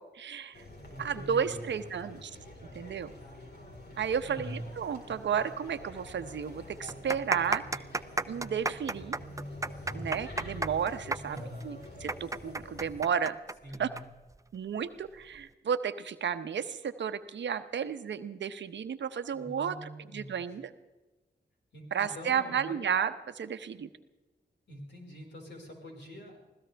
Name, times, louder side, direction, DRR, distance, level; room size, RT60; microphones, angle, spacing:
voice 1, 0.1-0.6 1.0-2.4 2.7-3.1 4.0-7.8 8.3-9.2 9.9-13.4 13.8-13.9 14.5-20.7 21.9-23.9, right 7 dB, 80° right, 11 dB, 0.9 m, -33 dB
sound 1, 0.5-13.0, left 1 dB, 60° left, 4.3 m, -46 dB
voice 2, 0.9-1.8 2.1-2.2 4.2-4.7 11.2-11.8 13.6-14.0 19.3-20.5 21.7-22.8 24.7-26.4, equal, 75° left, -1 dB, 4.9 m, -44 dB
sound 2, 5.7-5.8 6.0-6.1 6.8-14.0 14.3-14.4 15.2-15.4, right 2 dB, 15° right, 0.6 m, -33 dB
sound 3, 9.5-10.7, right 1 dB, 5° left, 3.9 m, -47 dB
25.0 x 16.5 x 3.4 m, 1.2 s
cardioid pair, 45°, 18 cm